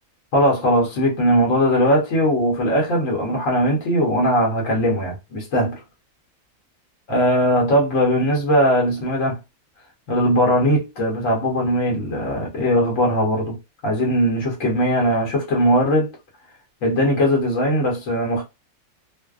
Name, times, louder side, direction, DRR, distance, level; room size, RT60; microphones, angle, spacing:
voice 1, 0.3-5.8 7.1-9.4 10.1-13.6 13.8-16.1 16.8-18.5, equal, 70° left, 1.1 m, -19 dB
2.6 x 2.0 x 2.3 m
omnidirectional pair, 1.4 m